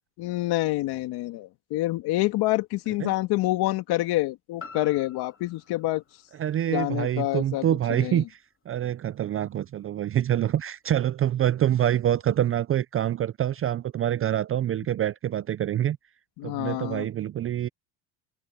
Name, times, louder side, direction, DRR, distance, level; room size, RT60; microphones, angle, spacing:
voice 1, 0.2-6.0 6.7-7.7 8.0-8.2 16.4-17.1, left 18 dB, 65° left, 2.3 m, -27 dB
sound 1, 4.6-8.7 9.1-9.2, left 4 dB, 30° left, 2.6 m, -49 dB
voice 2, 6.4-8.4 8.7-16.0 16.4-17.7, right 11 dB, 30° right, 0.6 m, -26 dB
supercardioid pair, 95°, 42 cm